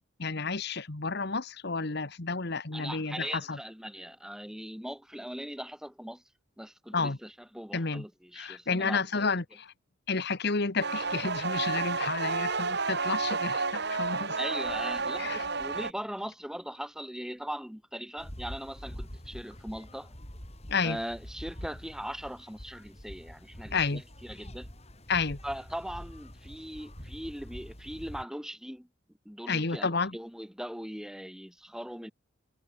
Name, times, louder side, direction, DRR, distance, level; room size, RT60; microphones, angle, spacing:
voice 1, 0.2-3.6 6.9-7.2 7.7-8.0 8.3-9.7 10.1-14.4 15.2-15.4 20.7-21.0 23.7-24.0 25.1-25.4 29.5-30.2, left 4 dB, 55° left, 1.4 m, -31 dB
voice 2, 2.7-6.2 6.6-9.3 14.4-20.1 20.8-24.7 25.4-28.9 29.2-32.1, equal, 5° right, 3.4 m, -40 dB
sound 1, 10.8-15.9, right 4 dB, 55° right, 3.2 m, -31 dB
sound 2, 18.2-28.2, equal, 30° left, 6.6 m, -45 dB
head